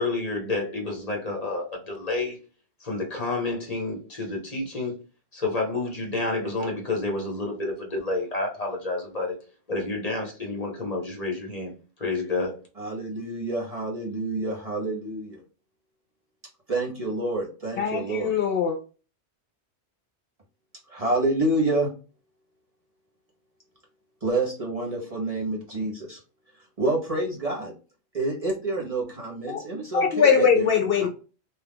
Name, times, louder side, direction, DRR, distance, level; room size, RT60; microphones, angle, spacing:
voice 1, 0.0-2.4 2.8-5.0 5.3-9.4 9.7-12.6, left 2 dB, 35° left, 1.0 m, -29 dB
voice 2, 12.8-15.4 16.7-18.3 20.9-21.9 24.2-26.2 26.8-27.7 28.1-30.7, right 2 dB, 35° right, 0.8 m, -28 dB
voice 3, 17.8-18.8 29.5-29.6 29.9-31.1, left 7 dB, 65° left, 0.7 m, -21 dB
2.7 x 2.3 x 3.4 m
omnidirectional pair, 1.1 m